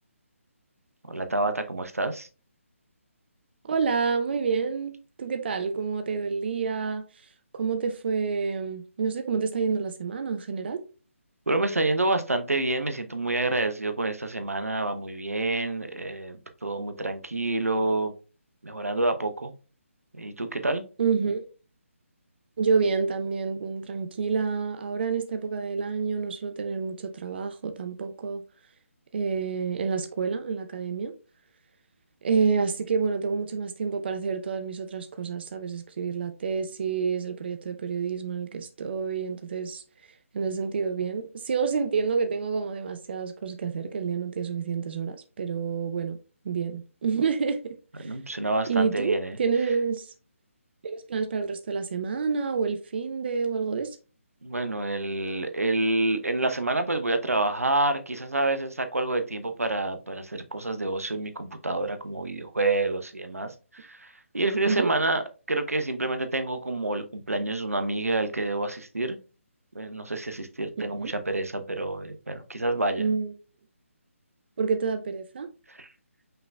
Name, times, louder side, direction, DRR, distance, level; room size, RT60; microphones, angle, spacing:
voice 1, 1.1-2.3 11.5-18.1 18.6-19.5 20.2-20.8 48.0-49.4 54.4-65.2 65.5-69.2 69.7-73.0 75.7-75.9, right 2 dB, 90° right, 0.8 m, -28 dB
voice 2, 3.6-4.9 5.2-7.0 7.5-10.8 21.0-21.5 22.6-28.4 29.1-31.1 32.2-39.8 40.3-46.2 46.4-48.1 48.6-50.1 50.8-54.0 64.6-64.9 70.8-71.1 73.0-73.3 74.6-75.5, right 5 dB, 45° right, 0.5 m, -28 dB
5.6 x 3.9 x 2.2 m
figure-of-eight pair, 150°, 8 cm